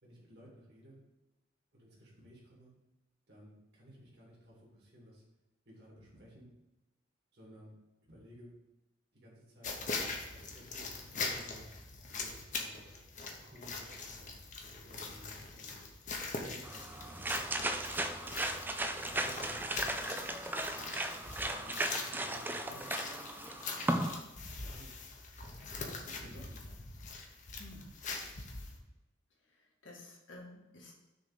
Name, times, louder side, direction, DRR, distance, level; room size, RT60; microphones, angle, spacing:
voice 1, 0.0-1.0 1.7-2.7 3.3-5.2 5.7-6.5 7.3-7.8 8.1-8.5 9.1-9.7 10.3-11.7 12.1-12.9 13.4-14.4 14.8-15.9 16.4-17.3 19.0-20.2 20.6-21.0 21.5-22.9 23.7-24.1 24.6-25.0 25.7-26.8, equal, 60° right, -5 dB, 2.3 m, -56 dB
sound 1, 9.6-28.8, left 4 dB, 40° left, 0.9 m, -43 dB
sound 2, 16.6-24.2, right 1 dB, 10° right, 0.3 m, -36 dB
voice 2, 27.6-27.9 29.4-30.9, left 2 dB, 75° left, -2 dB, 1.8 m, -52 dB
6.3 x 3.7 x 5.6 m, 1.0 s
head